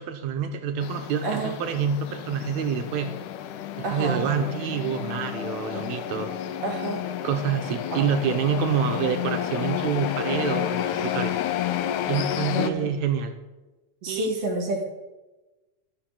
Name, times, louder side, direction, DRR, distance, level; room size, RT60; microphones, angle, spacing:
voice 1, 0.0-3.1 3.8-6.3 7.2-11.4 12.1-13.3 14.1-14.3, right 7 dB, 75° right, 7 dB, 1.7 m, -27 dB
sound 1, 0.8-12.7, left 11 dB, 85° left, 2.1 m, -30 dB
voice 2, 3.8-4.8 6.6-7.1 7.9-8.0 12.5-13.0 14.0-14.9, right 2 dB, 50° right, 2 dB, 2.3 m, -29 dB
12.0 x 5.5 x 7.2 m, 1.1 s
omnidirectional pair, 3.8 m